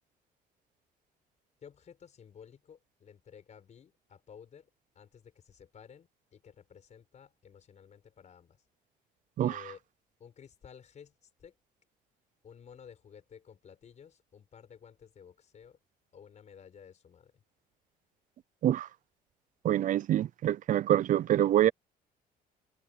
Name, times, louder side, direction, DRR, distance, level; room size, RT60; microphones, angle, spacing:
voice 1, 1.6-4.7 4.9-8.6 9.4-9.8 10.2-11.5 12.4-15.8 16.1-17.4, left 7 dB, 45° left, 4.9 m, -54 dB
voice 2, 19.6-21.7, right 12 dB, 50° right, 0.5 m, -26 dB
cardioid pair, 110°, 17 cm